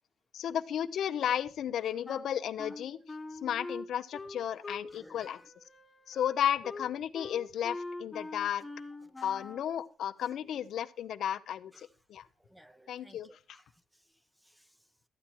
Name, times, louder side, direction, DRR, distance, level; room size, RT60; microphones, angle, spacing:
voice 1, 0.3-3.0 3.4-5.4 6.1-8.7 9.2-12.3 12.9-13.6, left 10 dB, 75° left, 0.6 m, -33 dB
Wind instrument woodwind instrument, 2.0-4.9 5.2-9.7, left 2 dB, 20° left, 1.1 m, -43 dB
voice 2, 4.9-5.5 9.1-9.3 11.7-11.9 12.4-14.0 14.4-14.8, equal, 5° right, 0.8 m, -59 dB
13.0 x 8.8 x 4.4 m
cardioid pair, 95°, 0 cm